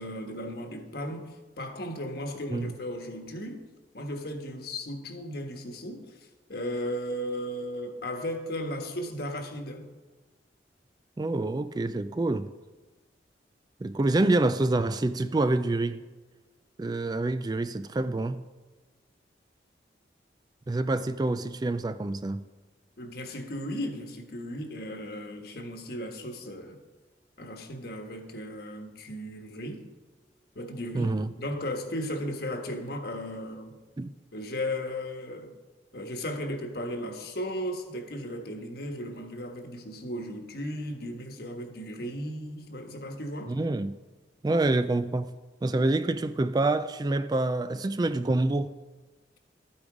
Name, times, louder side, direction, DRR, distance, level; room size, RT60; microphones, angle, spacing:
voice 1, 0.0-3.7 3.9-9.9 23.0-26.8 27.4-29.8 30.5-33.8 34.3-35.5 35.9-43.6, equal, 60° left, 1.4 m, -36 dB
voice 2, 11.2-12.5 13.8-16.0 16.8-18.5 20.7-22.4 30.9-31.3 34.0-34.1 43.5-44.0 44.4-45.3 45.6-48.7, right 2 dB, 20° right, 0.3 m, -27 dB
12.0 x 8.7 x 4.9 m
head